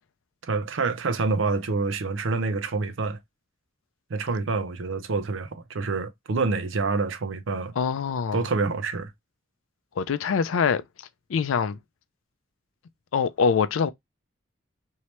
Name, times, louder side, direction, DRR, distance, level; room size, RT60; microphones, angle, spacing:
voice 1, 0.4-3.2 4.1-7.7 8.3-9.1, right 4 dB, 75° right, 0.5 m, -27 dB
voice 2, 7.8-8.4 10.0-10.8 11.3-11.8 13.1-13.9, left 6 dB, 85° left, 0.4 m, -24 dB
2.9 x 2.8 x 3.1 m
head